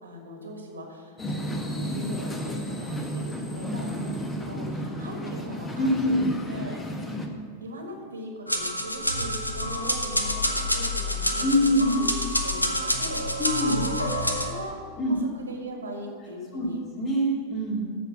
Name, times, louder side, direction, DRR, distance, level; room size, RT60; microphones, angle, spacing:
voice 1, 0.0-4.1 4.4-7.1 7.6-14.8 15.0-16.8, equal, 75° right, 2 dB, 1.7 m, -40 dB
sound 1, 1.2-7.3, equal, 15° left, 1.1 m, -32 dB
voice 2, 5.8-6.2 11.4-12.0 13.4-13.9 15.0-15.2 16.5-16.7 17.0-17.9, equal, 35° left, -3 dB, 2.5 m, -24 dB
sound 2, 8.5-14.5, left 1 dB, 85° left, 0.8 m, -27 dB
13.5 x 4.7 x 6.4 m, 2.4 s
figure-of-eight pair, 90°, 0 cm